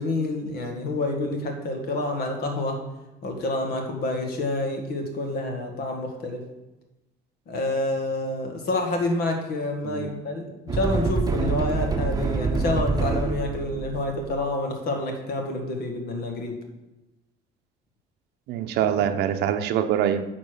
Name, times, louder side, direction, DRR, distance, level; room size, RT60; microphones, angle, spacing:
voice 1, 0.0-2.8 3.2-6.4 7.5-16.6, left 2 dB, 70° left, 3 dB, 1.9 m, -28 dB
voice 2, 9.8-10.2 18.5-20.2, right 9 dB, 80° right, 8 dB, 0.6 m, -24 dB
sound 1, 10.7-14.4, right 4 dB, 20° right, 0.8 m, -26 dB
9.3 x 4.3 x 6.5 m, 1.0 s
cardioid pair, 110°, 17 cm